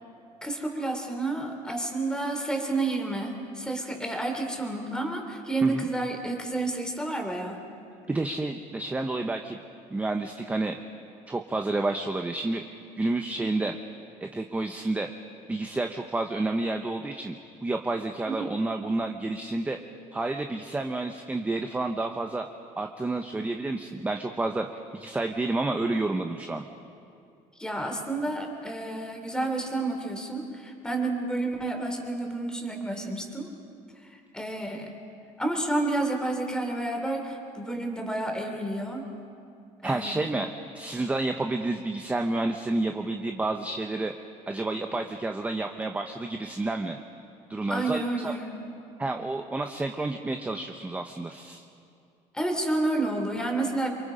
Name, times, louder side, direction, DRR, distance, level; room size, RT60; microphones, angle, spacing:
voice 1, 0.4-7.6 18.3-18.5 27.6-33.5 34.3-34.9 35.4-39.0 39.8-40.2 47.7-48.6 52.3-53.9, right 2 dB, 5° left, 3 dB, 3.1 m, -30 dB
voice 2, 8.1-9.6 9.9-10.8 11.3-12.6 13.0-13.8 14.2-15.1 15.5-17.4 17.6-19.8 20.1-22.5 22.8-24.7 24.9-26.6 39.8-44.1 44.5-47.0 47.5-48.3 49.0-51.6, right 2 dB, 10° right, 5 dB, 0.9 m, -30 dB
28.5 x 24.0 x 5.1 m, 2.5 s
cardioid pair, 125°, 13 cm